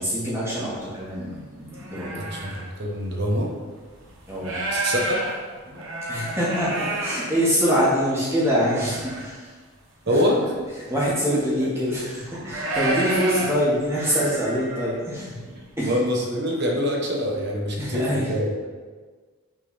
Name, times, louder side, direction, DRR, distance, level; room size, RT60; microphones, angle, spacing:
voice 1, 0.0-2.2 4.3-4.6 6.1-9.5 10.1-10.2 10.9-15.4 15.8-15.9 17.8-18.3, equal, 10° right, -8 dB, 1.6 m, -25 dB
sound 1, 0.7-0.8 1.3-2.6 3.3-3.4 3.9-7.9 8.4-9.3 9.6-9.7 10.2-10.3 10.5-11.2 11.9-15.0, right 2 dB, 65° right, 1.2 m, -30 dB
voice 2, 2.2-3.5 4.7-5.2 10.1-10.4 11.6-11.7 15.8-18.7, equal, 50° right, -1 dB, 1.0 m, -25 dB
6.0 x 3.8 x 4.2 m, 1.5 s
head